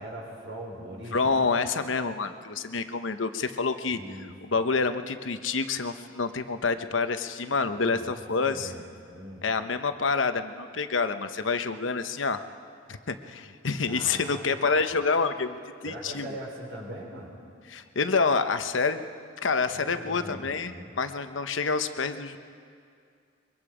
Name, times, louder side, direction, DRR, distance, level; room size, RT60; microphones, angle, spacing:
voice 1, 0.0-1.4 3.9-4.3 7.7-8.8 9.1-9.4 13.8-14.8 15.8-17.3 19.7-20.9, right 1 dB, 75° right, -1 dB, 5.2 m, -41 dB
voice 2, 1.1-4.0 4.4-8.7 9.4-12.4 12.9-16.4 17.7-19.0 19.4-22.4, left 4 dB, 85° left, 9 dB, 1.0 m, -28 dB
23.5 x 23.0 x 5.0 m, 2.3 s
head